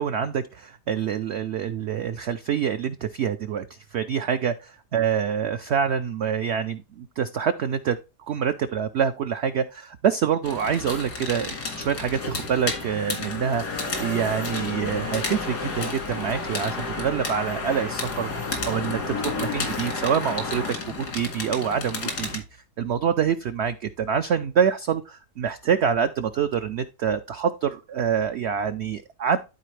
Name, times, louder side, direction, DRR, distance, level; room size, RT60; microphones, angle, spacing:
voice 1, 0.0-8.0 8.3-29.4, right 8 dB, 75° right, 10 dB, 0.6 m, -26 dB
sound 1, 10.4-22.4, left 3 dB, 90° left, 2.5 m, -31 dB
12.5 x 4.2 x 3.2 m, 0.29 s
omnidirectional pair, 1.7 m